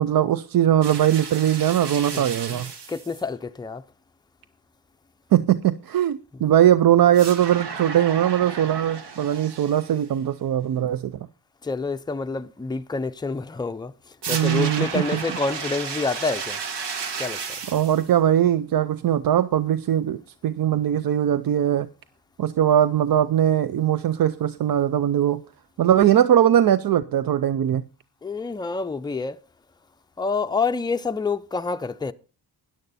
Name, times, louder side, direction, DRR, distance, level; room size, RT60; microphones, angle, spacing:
voice 1, 0.0-2.7 5.3-11.1 14.3-15.2 17.7-21.9 22.4-25.4 25.8-27.8, right 10 dB, 55° right, 0.5 m, -20 dB
sound 1, 0.8-3.2 7.1-10.1 14.2-18.1, right 5 dB, 70° right, 1.6 m, -33 dB
voice 2, 2.1-3.8 6.3-6.4 10.7-10.9 11.6-13.9 14.3-16.6 17.2-17.4 28.2-29.4 30.2-32.1, left 4 dB, 10° left, 0.5 m, -28 dB
13.5 x 10.0 x 4.2 m
wide cardioid pair, 115°, 43 cm